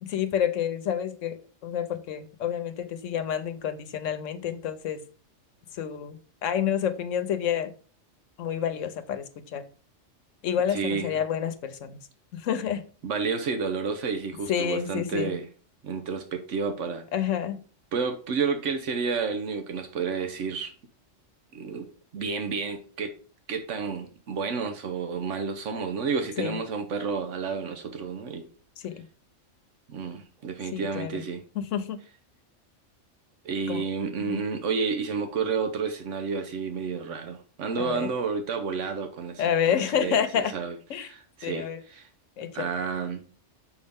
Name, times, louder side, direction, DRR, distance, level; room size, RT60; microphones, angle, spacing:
voice 1, 0.0-5.0 5.7-7.7 8.4-9.6 10.4-12.0 12.3-12.8 14.5-15.3 17.1-17.6 26.4-26.6 28.8-29.0 30.7-31.2 31.6-32.0 33.7-33.8 34.2-34.4 37.8-38.1 39.4-40.5 40.9-41.1 41.4-41.8 42.4-42.7, left 9 dB, 80° left, 1.1 m, -29 dB
voice 2, 10.7-11.2 13.0-15.5 15.8-17.0 17.9-20.7 21.5-23.2 23.5-28.5 29.9-31.4 33.4-42.1 42.5-43.2, right 5 dB, 75° right, 1.1 m, -30 dB
6.9 x 5.4 x 3.5 m
omnidirectional pair, 1.3 m